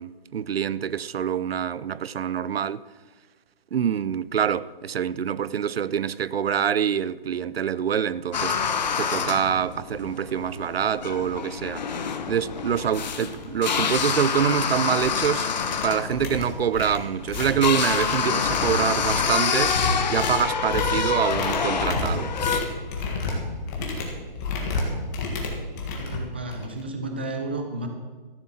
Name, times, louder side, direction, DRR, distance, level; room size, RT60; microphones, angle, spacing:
voice 1, 0.0-2.8 3.7-8.6 9.0-11.9 12.3-15.5 15.8-19.8 20.1-22.3, right 8 dB, 85° right, 0.6 m, -25 dB
sound 1, 8.3-22.6, left 6 dB, 50° left, 1.0 m, -27 dB
sound 2, 12.7-12.8 13.2-13.4 13.7-14.0 14.4-15.3 15.6-26.8, left 3 dB, 20° left, 1.6 m, -31 dB
voice 2, 25.9-27.9, right 2 dB, 10° right, 0.4 m, -32 dB
14.0 x 7.7 x 7.3 m
hypercardioid pair, 165°, 29 cm